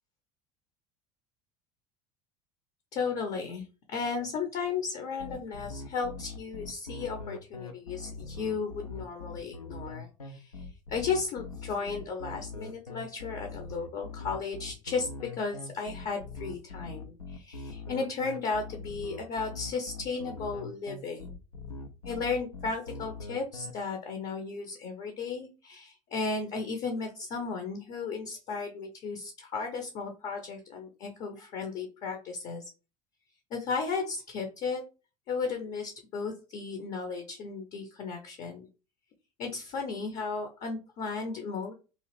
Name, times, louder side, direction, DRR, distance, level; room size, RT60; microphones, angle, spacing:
voice 1, 2.9-21.3 22.0-32.7 33.5-34.8 35.3-38.7 39.4-41.7, left 4 dB, 40° left, 5 dB, 0.6 m, -35 dB
sound 1, 5.2-23.7, left 3 dB, 85° left, 0.4 m, -42 dB
2.9 x 2.4 x 3.1 m, 0.33 s
figure-of-eight pair, 65°, 18 cm